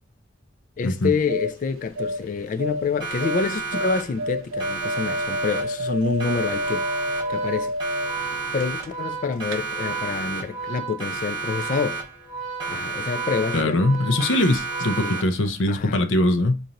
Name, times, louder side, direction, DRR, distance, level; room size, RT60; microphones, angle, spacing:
voice 1, 0.8-6.9 7.3-7.7 8.5-12.0 12.6-13.8 15.0-15.2 15.7-16.1, left 5 dB, 40° left, 0.3 m, -27 dB
sound 1, 0.9-9.2 9.4-9.6, equal, 85° right, 0.5 m, -30 dB
Siren, 3.0-4.3 4.6-5.9 6.2-7.5 7.8-9.1 9.4-10.7 11.0-12.3 12.6-13.9 14.2-15.5, right 4 dB, 25° right, 2.0 m, -32 dB
Organ, 6.6-15.7, right 6 dB, 25° left, 1.6 m, -36 dB
voice 2, 13.5-16.6, left 1 dB, 75° left, 0.6 m, -21 dB
5.1 x 2.6 x 2.9 m
head